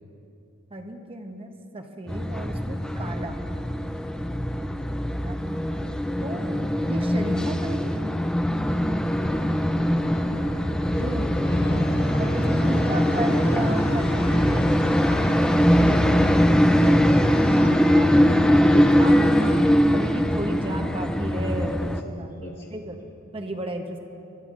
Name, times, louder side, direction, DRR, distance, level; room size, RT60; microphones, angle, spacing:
voice 1, 0.7-3.4 5.2-5.9 6.2-8.1 10.9-11.2 12.1-15.1 16.7-19.5 19.9-23.0 23.3-24.0, right 1 dB, 25° right, 4 dB, 0.9 m, -34 dB
sound 1, 2.1-22.0, equal, 5° left, 0.3 m, -22 dB
sound 2, 6.7-7.9 8.5-21.2, equal, 85° left, 3.1 m, -36 dB
voice 2, 10.9-12.2 12.5-13.0 15.0-16.3 21.5-22.7, left 1 dB, 50° left, -7 dB, 1.6 m, -36 dB
22.0 x 12.5 x 2.5 m, 2.7 s
head